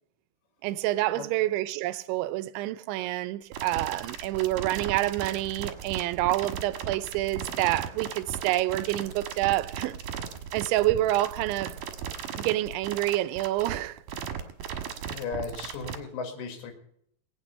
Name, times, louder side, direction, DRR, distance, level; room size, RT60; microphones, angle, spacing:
voice 1, 0.6-10.0 10.5-11.8 12.4-14.0, right 16 dB, 90° right, 3.0 m, -28 dB
sound 1, 3.5-16.0, right 8 dB, 60° right, 2.5 m, -36 dB
voice 2, 15.1-16.7, left 5 dB, 75° left, 4.0 m, -36 dB
21.0 x 9.1 x 5.5 m
omnidirectional pair, 5.2 m